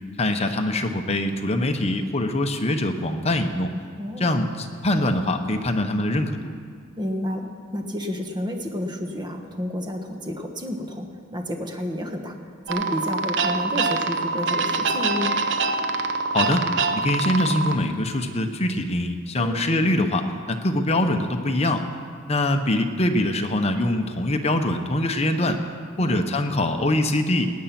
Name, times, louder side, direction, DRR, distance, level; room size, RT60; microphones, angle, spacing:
voice 1, 0.2-3.7 4.2-6.5 16.3-16.7 16.9-21.8 22.3-25.6 26.0-27.5, left 1 dB, 30° left, 6 dB, 1.0 m, -23 dB
voice 2, 7.0-12.4 12.7-15.4 19.4-19.6 26.0-26.3, left 1 dB, 20° right, 4 dB, 1.3 m, -30 dB
sound 1, 12.7-17.8, right 4 dB, 65° right, 0.8 m, -25 dB
18.5 x 8.8 x 6.0 m, 2.1 s
head